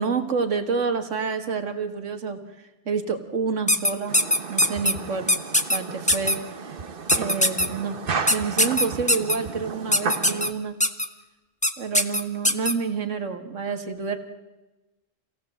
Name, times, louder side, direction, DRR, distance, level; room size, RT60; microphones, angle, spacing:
voice 1, 0.0-2.4 2.9-4.2 4.5-5.3 5.7-6.4 6.6-6.8 7.2-8.0 8.3-10.8 11.8-14.2, right 5 dB, 70° right, 6 dB, 2.0 m, -28 dB
sound 1, 3.7-4.9 5.3-5.8 6.1-6.3 7.1-7.7 8.3-9.3 9.9-10.5 10.8-11.0 11.6-11.7 11.9-12.7, left 1 dB, 5° left, 1.0 m, -20 dB
sound 2, 4.1-10.5, right 5 dB, 45° right, 1.2 m, -33 dB
26.5 x 17.0 x 7.8 m, 1.1 s
omnidirectional pair, 1.3 m